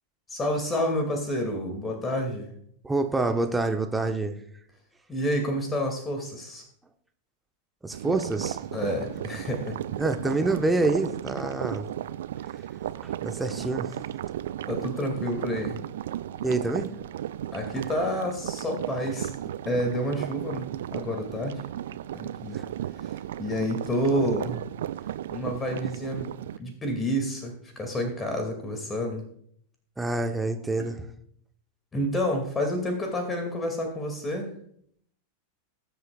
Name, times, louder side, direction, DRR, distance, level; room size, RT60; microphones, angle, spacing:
voice 1, 0.3-2.5 5.1-6.6 8.7-9.8 14.7-15.8 17.5-21.7 22.1-22.6 23.0-23.1 23.4-24.7 25.3-26.3 26.6-29.2 31.9-34.5, equal, 15° left, 3 dB, 2.4 m, -29 dB
voice 2, 2.8-4.4 7.8-8.6 10.0-11.9 13.0-14.0 16.4-16.9 22.5-22.6 30.0-31.0, right 2 dB, 10° right, 6 dB, 1.1 m, -27 dB
sound 1, 7.9-26.6, right 11 dB, 60° right, 0.4 m, -35 dB
20.5 x 8.0 x 2.4 m, 0.66 s
figure-of-eight pair, 90°, 0 cm